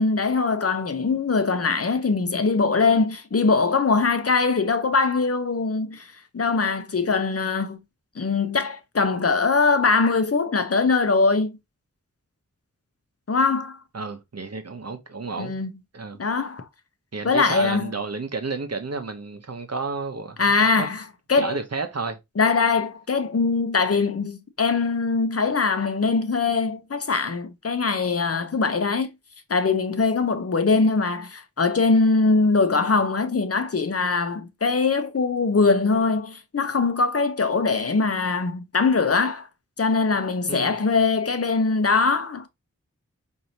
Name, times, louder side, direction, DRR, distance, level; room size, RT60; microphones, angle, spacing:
voice 1, 0.0-7.8 8.2-11.5 13.3-13.8 15.4-15.7 16.2-16.6 17.2-17.9 20.4-21.6 22.4-29.1 29.5-39.5 39.8-42.5, left 4 dB, 45° left, 0.7 m, -22 dB
voice 2, 13.9-15.5 15.9-16.2 17.1-20.4 20.8-20.9 21.4-22.2 40.5-40.8, right 4 dB, 50° right, 0.8 m, -31 dB
4.6 x 2.7 x 2.7 m
wide cardioid pair, 55°, 32 cm